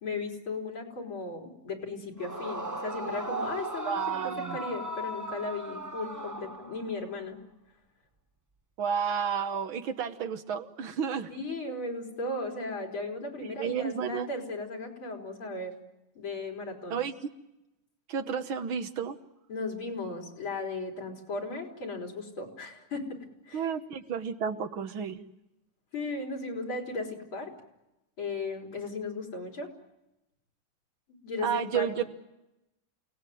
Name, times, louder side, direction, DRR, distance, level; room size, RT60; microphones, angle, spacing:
voice 1, 0.0-7.4 11.3-15.7 16.1-17.0 19.5-23.7 25.9-27.5 28.2-29.7 31.1-32.0, left 3 dB, 75° left, 2 dB, 4.9 m, -36 dB
Yell / Screaming, 2.2-7.1, right 2 dB, 15° right, 0.6 m, -37 dB
voice 2, 3.9-4.6 8.8-11.3 13.4-14.3 16.9-17.1 18.1-19.2 23.5-25.2 31.4-32.0, right 7 dB, 75° right, 9 dB, 2.1 m, -31 dB
28.5 x 18.5 x 9.3 m, 0.94 s
omnidirectional pair, 2.3 m